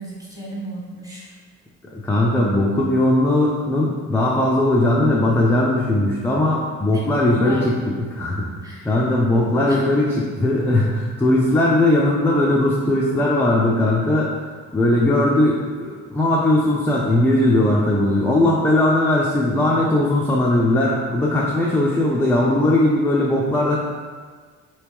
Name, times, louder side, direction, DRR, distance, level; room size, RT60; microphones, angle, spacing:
voice 1, 0.0-1.3 6.9-7.0 7.3-7.7 8.6-9.0 9.4-9.9, right 1 dB, 10° right, -5 dB, 1.2 m, -34 dB
voice 2, 1.9-8.5 8.8-23.8, left 1 dB, 5° left, -5 dB, 0.4 m, -19 dB
3.0 x 3.0 x 3.4 m, 1.5 s
cardioid pair, 95°, 29 cm